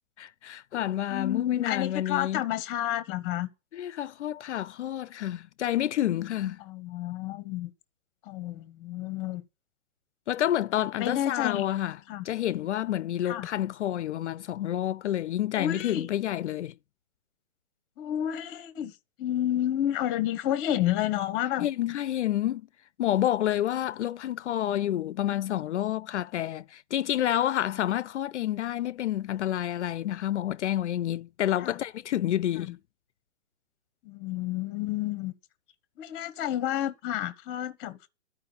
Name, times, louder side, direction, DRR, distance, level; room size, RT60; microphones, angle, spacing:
voice 1, 0.2-2.4 3.7-6.6 10.3-12.0 12.3-16.7 21.6-22.6 23.0-32.8, left 12 dB, 75° left, 0.5 m, -29 dB
voice 2, 1.1-3.5 6.6-7.7 8.2-9.4 10.8-11.6 12.1-12.2 13.2-13.5 15.6-16.1 18.0-18.9 19.2-21.7 31.6-31.8 32.5-32.7 34.0-35.3 36.0-38.1, left 12 dB, 20° left, 0.9 m, -30 dB
12.5 x 4.8 x 8.7 m
hypercardioid pair, 155°, 36 cm